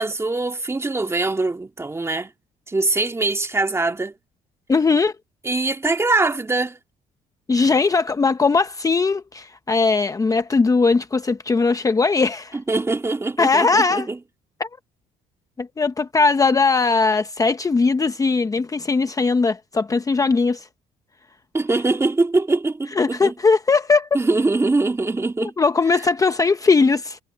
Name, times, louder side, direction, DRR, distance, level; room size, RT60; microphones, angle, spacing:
voice 1, 0.0-2.3 2.7-4.1 5.4-6.8 12.7-14.2 21.5-23.3 24.1-25.5, right 3 dB, 15° right, 1.9 m, -22 dB
voice 2, 4.7-5.1 7.5-12.6 13.4-14.1 14.6-14.7 15.6-20.7 22.9-24.1 25.6-27.2, left 4 dB, 20° left, 0.8 m, -19 dB
cardioid pair, 110°, 17 cm